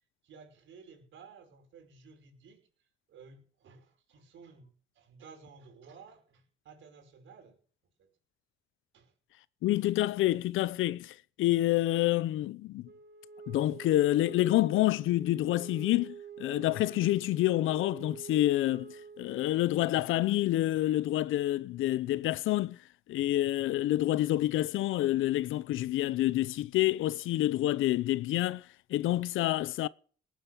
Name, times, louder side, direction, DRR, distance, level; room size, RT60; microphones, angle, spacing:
voice 1, 0.2-2.6 3.1-7.6 8.0-8.1 8.9-9.1, right 5 dB, 75° right, 5.6 m, -54 dB
voice 2, 9.6-12.9 13.5-22.8 23.1-29.9, left 15 dB, 85° left, 0.8 m, -28 dB
Wind instrument woodwind instrument, 12.8-19.6, right 6 dB, 55° right, 3.3 m, -47 dB
19.5 x 9.3 x 6.2 m
cardioid pair, 90°, 20 cm